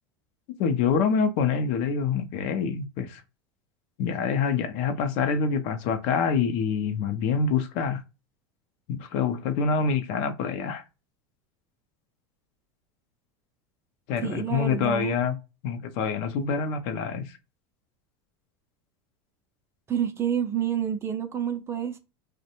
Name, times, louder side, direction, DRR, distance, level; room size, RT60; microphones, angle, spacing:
voice 1, 0.6-3.2 4.0-8.0 8.9-10.8 14.1-15.3 15.6-17.2, left 6 dB, 60° left, 0.5 m, -26 dB
voice 2, 14.2-15.2 19.9-22.0, right 9 dB, 20° right, 0.4 m, -28 dB
2.5 x 2.1 x 2.8 m
supercardioid pair, 125°, 13 cm